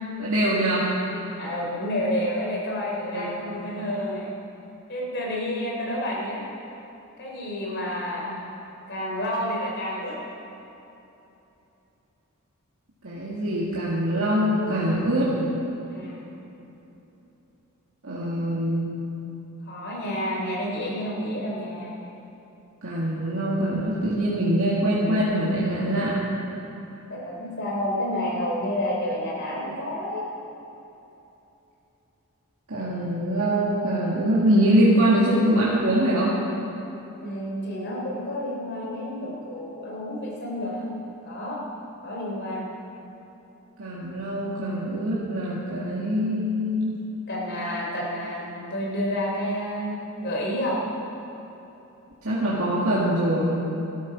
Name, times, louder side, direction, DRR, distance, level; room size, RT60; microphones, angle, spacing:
voice 1, 0.2-0.9 3.1-3.6 13.0-15.3 18.0-18.9 22.8-26.3 32.7-36.3 43.8-47.0 52.2-53.6, right 1 dB, 70° right, -7 dB, 2.1 m, -23 dB
voice 2, 1.4-4.3 4.9-6.4 7.2-8.4 8.9-10.2 15.9-16.3 19.6-22.0 27.1-30.2 37.2-40.9 41.2-41.6 42.0-42.7 47.3-50.8, left 1 dB, 50° left, -3 dB, 3.4 m, -29 dB
13.0 x 12.5 x 6.0 m, 3.0 s
head